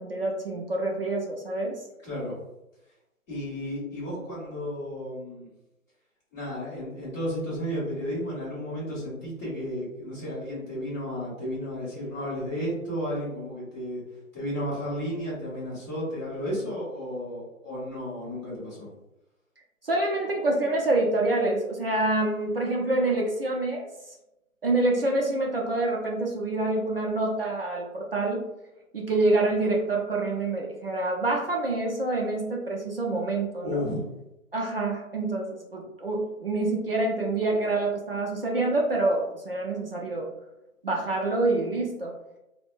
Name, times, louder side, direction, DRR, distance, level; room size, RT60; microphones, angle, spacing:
voice 1, 0.0-1.8 19.8-24.2 24.6-28.5 28.9-33.8 34.5-40.3 40.8-42.2, right 2 dB, 45° right, -1 dB, 0.5 m, -27 dB
voice 2, 2.0-2.3 3.3-5.5 6.3-14.0 14.3-18.9 33.6-34.0, equal, 10° left, -14 dB, 1.0 m, -33 dB
3.5 x 2.1 x 2.4 m, 0.91 s
hypercardioid pair, 170°, 41 cm